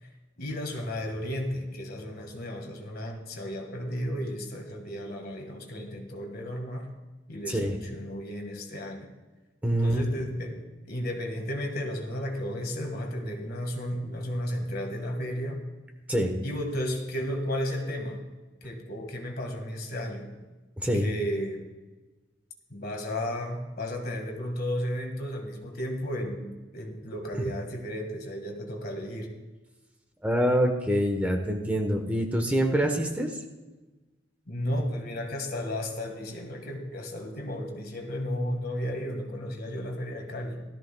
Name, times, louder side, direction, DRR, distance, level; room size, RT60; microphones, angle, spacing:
voice 1, 0.4-6.9 7.3-9.1 9.8-15.6 16.4-18.2 18.6-20.3 20.9-21.7 22.7-29.3 34.5-40.6, equal, 55° left, 3 dB, 1.7 m, -33 dB
voice 2, 9.6-10.0 16.1-16.3 20.8-21.1 30.2-33.4, equal, 10° right, 3 dB, 1.0 m, -25 dB
17.0 x 13.5 x 2.3 m, 1.2 s
head